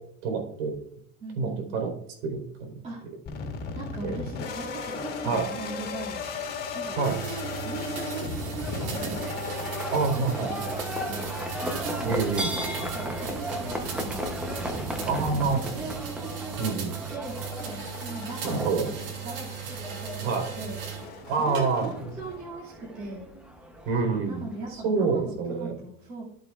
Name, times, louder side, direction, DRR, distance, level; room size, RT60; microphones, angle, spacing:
voice 1, 0.2-0.7 1.4-1.9 2.2-2.8 4.0-4.2 5.3-5.5 7.0-7.2 9.9-10.5 12.0-12.5 15.1-15.6 16.6-17.0 18.4-18.9 20.2-20.5 21.3-21.9 23.9-24.4 24.7-25.7, right 4 dB, 85° right, 3 dB, 4.1 m, -27 dB
voice 2, 1.2-1.8 2.8-3.0 3.7-6.2 6.7-7.0 7.6-9.3 10.1-12.2 12.5-14.4 15.1-23.3 24.2-26.2, right 2 dB, 20° right, -7 dB, 2.4 m, -40 dB
sound 1, 3.3-22.5, left 4 dB, 30° left, 2.0 m, -38 dB
sound 2, 7.0-21.1 21.6-22.1, right 9 dB, 60° right, 2.9 m, -38 dB
Livestock farm animals working animals, 8.3-24.8, equal, 5° right, 0.8 m, -36 dB
13.5 x 8.0 x 2.4 m, 0.69 s
cardioid pair, 175°, 31 cm